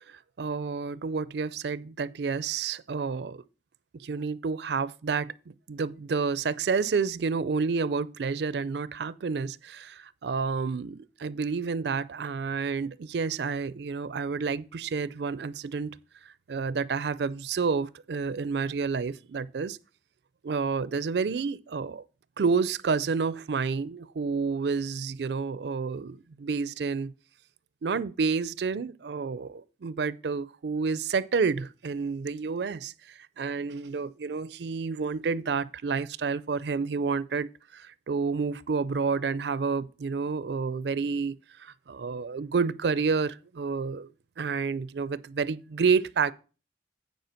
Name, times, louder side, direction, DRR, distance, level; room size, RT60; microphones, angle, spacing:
voice 1, 0.1-3.4 4.0-5.3 5.7-15.9 16.5-19.8 20.4-22.0 22.4-27.1 27.8-44.1 44.4-46.3, right 5 dB, 75° right, 0.4 m, -29 dB
9.4 x 4.6 x 5.8 m
head